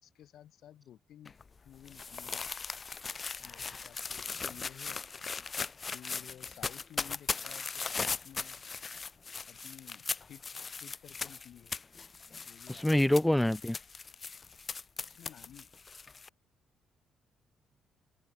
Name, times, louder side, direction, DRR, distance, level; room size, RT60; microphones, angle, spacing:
voice 1, 0.0-1.4 1.6-2.5 3.4-5.3 5.9-8.6 9.5-11.7 12.5-13.4 15.2-15.7, left 11 dB, 70° left, 5.5 m, -54 dB
sound 1, 1.2-16.3, left 5 dB, 35° left, 0.9 m, -39 dB
voice 2, 12.7-13.8, left 1 dB, 5° left, 0.5 m, -26 dB
open air
cardioid pair, 90°, 0 cm